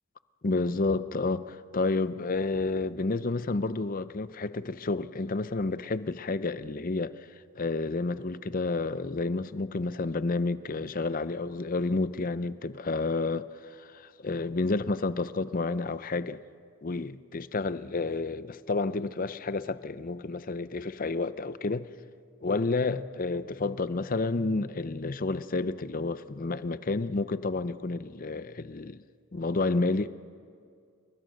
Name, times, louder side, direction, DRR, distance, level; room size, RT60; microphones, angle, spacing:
voice 1, 0.4-7.3 7.6-16.4 16.8-21.9 22.4-29.0 29.3-30.1, left 3 dB, 40° left, 0.6 m, -30 dB
29.0 x 22.0 x 6.5 m
head